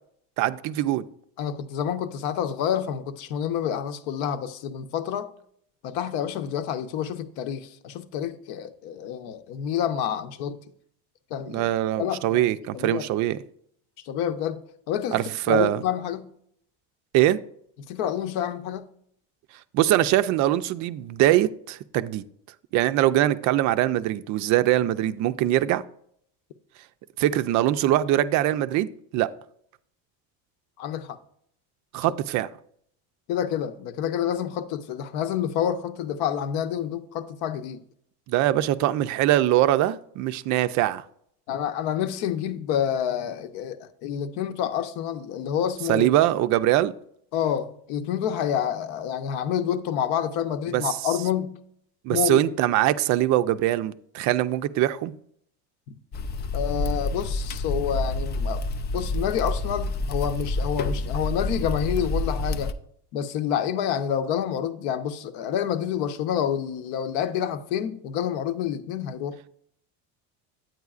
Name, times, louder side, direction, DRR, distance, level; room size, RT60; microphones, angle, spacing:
voice 1, 0.4-1.1 11.5-13.4 15.1-15.8 17.1-17.4 19.7-22.2 22.7-25.8 27.2-29.3 31.9-32.5 38.3-41.0 45.9-46.9 50.7-50.8 52.0-55.1, right 14 dB, 50° right, 0.4 m, -22 dB
voice 2, 1.4-5.3 5.8-10.6 11.3-11.7 12.0-12.4 12.7-13.0 14.1-14.6 14.9-16.3 17.9-18.8 30.8-31.2 33.3-37.8 41.5-46.1 47.3-51.6 52.1-52.4 55.9-56.0 56.5-58.6 58.9-62.7 63.1-69.4, left 9 dB, 70° left, 0.8 m, -28 dB
sound 1, 56.1-62.7, left 2 dB, 30° left, 0.3 m, -28 dB
9.3 x 8.9 x 2.4 m
cardioid pair, 150°, 37 cm